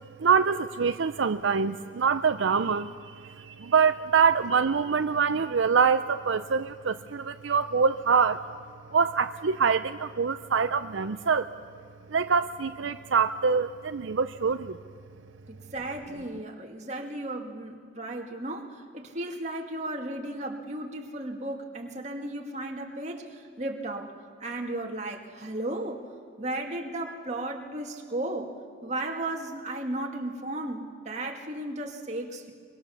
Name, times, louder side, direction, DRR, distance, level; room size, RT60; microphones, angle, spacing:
voice 1, 0.2-8.4 8.9-11.5 12.1-14.8, right 6 dB, 80° right, 10 dB, 0.6 m, -25 dB
voice 2, 15.5-24.2 24.4-26.0 26.4-28.5 28.8-32.5, right 1 dB, 35° right, 2 dB, 2.3 m, -35 dB
24.0 x 24.0 x 7.1 m, 2.1 s
head